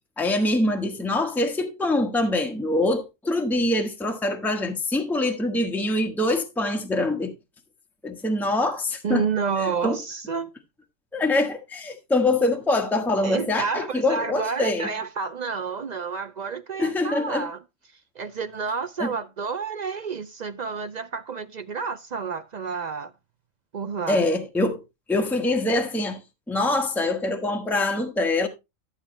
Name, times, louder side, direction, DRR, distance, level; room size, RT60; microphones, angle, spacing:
voice 1, 0.2-7.3 8.0-9.2 9.6-10.0 11.1-14.9 16.8-17.5 19.0-19.1 24.1-24.8 25.1-26.2 26.5-28.5, left 2 dB, ahead, 1.1 m, -24 dB
voice 2, 9.0-10.5 13.2-17.6 18.2-23.1 23.7-24.3, right 5 dB, 65° right, 0.4 m, -30 dB
12.5 x 7.4 x 3.1 m
omnidirectional pair, 1.4 m